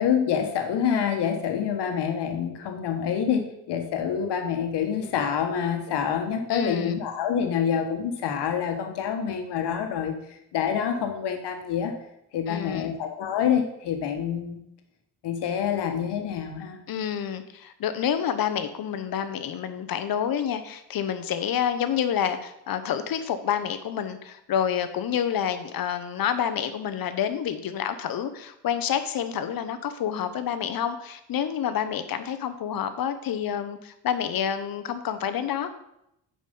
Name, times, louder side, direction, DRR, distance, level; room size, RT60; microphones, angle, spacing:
voice 1, 0.0-11.9 12.3-14.6 15.2-16.8, left 8 dB, 70° left, 4 dB, 1.6 m, -27 dB
voice 2, 6.5-7.0 12.5-12.9 16.9-35.7, left 9 dB, 55° left, 10 dB, 1.0 m, -28 dB
9.3 x 5.1 x 5.4 m, 0.81 s
cardioid pair, 95°, 42 cm